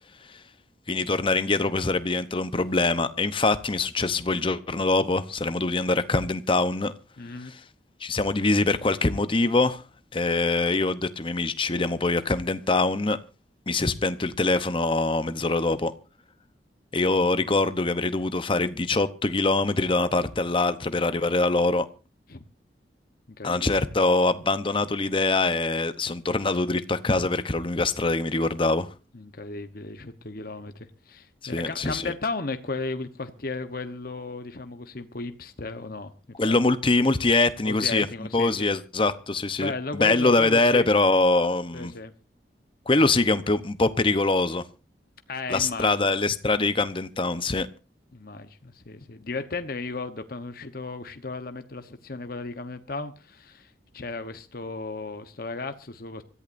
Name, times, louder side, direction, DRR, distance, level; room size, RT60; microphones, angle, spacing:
voice 1, 0.9-6.9 8.0-9.8 10.1-13.2 13.7-15.9 16.9-21.9 23.4-28.9 31.5-32.1 36.4-38.1 38.3-41.9 42.9-44.6 45.5-47.7, left 3 dB, 30° left, 0.8 m, -23 dB
voice 2, 7.2-7.5 22.3-22.4 23.4-23.7 29.1-36.6 37.6-38.7 39.6-40.9 41.7-42.1 45.3-46.1 48.1-56.2, left 3 dB, 55° left, 1.0 m, -35 dB
25.5 x 14.0 x 2.6 m
head